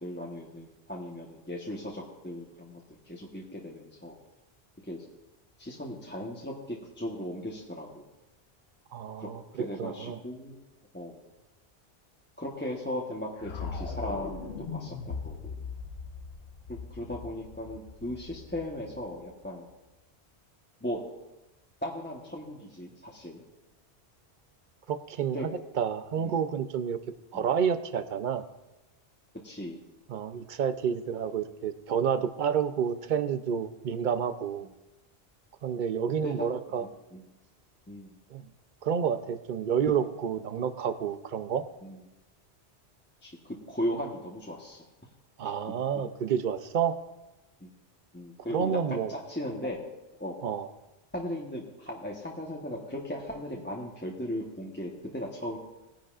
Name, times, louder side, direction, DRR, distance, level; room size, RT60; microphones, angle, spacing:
voice 1, 0.0-4.2 4.9-5.0 5.6-8.0 9.2-10.6 10.9-11.2 12.4-15.6 16.7-19.6 20.8-21.0 21.8-23.4 25.3-25.5 26.2-26.4 27.3-27.5 29.4-29.8 36.2-36.5 36.8-37.3 37.9-38.1 41.8-42.0 43.2-44.8 47.6-47.7 48.1-49.8 50.2-50.4 51.1-55.6, left 1 dB, 10° left, -3 dB, 1.1 m, -37 dB
voice 2, 8.9-10.2 24.9-25.5 25.8-27.0 27.3-28.4 30.1-34.7 35.6-36.8 38.3-38.4 38.8-41.6 45.4-47.0 48.5-49.1 50.4-50.7, right 7 dB, 55° right, 11 dB, 0.7 m, -29 dB
sound 1, 13.4-19.5, left 5 dB, 75° left, 1.1 m, -40 dB
18.5 x 10.5 x 2.5 m, 1.0 s
omnidirectional pair, 1.1 m